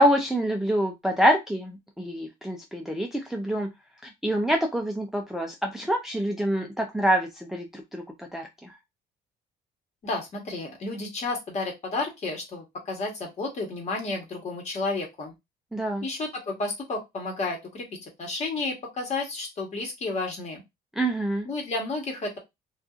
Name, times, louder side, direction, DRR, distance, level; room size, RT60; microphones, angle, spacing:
voice 1, 0.0-3.7 4.0-8.7 15.7-16.0 20.9-21.5, right 1 dB, ahead, 2 dB, 0.4 m, -26 dB
voice 2, 10.0-15.3 16.0-20.6 21.4-22.4, left 3 dB, 40° left, 1 dB, 1.2 m, -32 dB
2.6 x 2.4 x 2.3 m, 0.20 s
cardioid pair, 110°, 17 cm